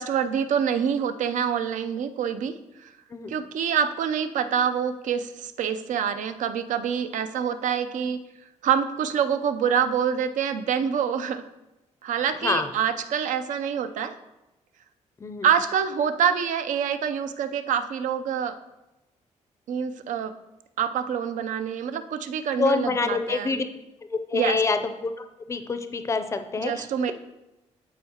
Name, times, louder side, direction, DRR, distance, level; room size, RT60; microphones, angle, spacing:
voice 1, 0.0-2.5 3.3-8.2 8.6-11.4 12.0-14.1 15.4-18.6 19.7-20.3 20.8-23.6 24.3-24.6 26.6-27.1, right 7 dB, 80° right, 9 dB, 0.5 m, -26 dB
voice 2, 22.5-23.6 24.1-27.1, left 4 dB, 25° left, 9 dB, 0.4 m, -27 dB
12.5 x 4.7 x 2.9 m, 0.97 s
wide cardioid pair, 175°, 13 cm